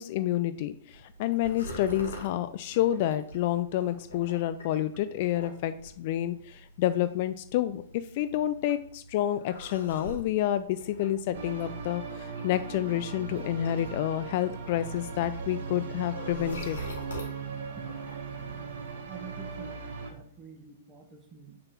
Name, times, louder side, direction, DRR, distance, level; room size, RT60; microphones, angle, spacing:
voice 1, 0.0-16.8, left 12 dB, 45° left, 13 dB, 0.4 m, -29 dB
sound 1, 0.9-19.0, equal, 65° left, 2.2 m, -46 dB
sound 2, 11.3-20.1, right 5 dB, 55° right, 1.4 m, -38 dB
voice 2, 19.1-21.6, right 6 dB, 20° right, 3 dB, 1.4 m, -47 dB
6.5 x 3.9 x 5.9 m, 0.62 s
figure-of-eight pair, 105°, 0 cm